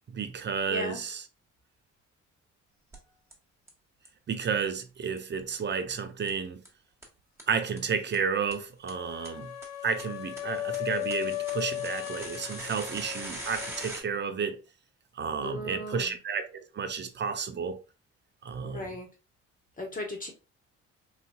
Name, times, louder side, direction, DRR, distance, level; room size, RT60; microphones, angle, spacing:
voice 1, 0.1-1.2 4.3-6.6 7.5-9.5 9.8-14.6 15.2-17.8 18.4-18.8, right 6 dB, 35° right, 0.5 m, -32 dB
voice 2, 0.7-1.0 15.4-16.2 18.6-19.1 19.8-20.3, left 1 dB, 25° left, 1.3 m, -37 dB
sound 1, 2.9-3.0 3.3-3.4 3.7-3.8 4.0-4.1 4.4-4.5 4.8-4.9 5.2-5.3 5.5-5.6 5.9-6.0 6.3-6.4 6.6-6.7 7.0-7.1 7.4-7.5 7.8-7.9 8.1-8.2 8.5-8.6 8.9-9.0 9.2-9.3 9.6-14.0, right 1 dB, 10° right, 1.3 m, -42 dB
sound 2, 8.9-13.8, left 14 dB, 60° left, 0.7 m, -36 dB
4.1 x 2.6 x 2.2 m
cardioid pair, 90°, 30 cm